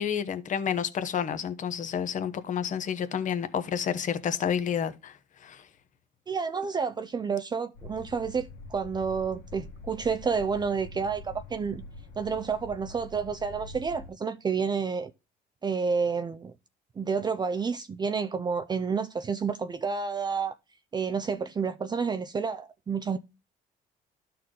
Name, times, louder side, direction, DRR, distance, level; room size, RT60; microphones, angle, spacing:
voice 1, 0.0-5.6, left 8 dB, 50° left, 1.0 m, -30 dB
voice 2, 6.3-11.8 12.2-15.1 15.6-16.5 17.0-20.5 20.9-23.2, right 5 dB, 25° right, 0.5 m, -30 dB
sound 1, 7.7-14.1, left 2 dB, 80° left, 1.7 m, -45 dB
12.0 x 4.3 x 3.8 m
cardioid pair, 110°, 17 cm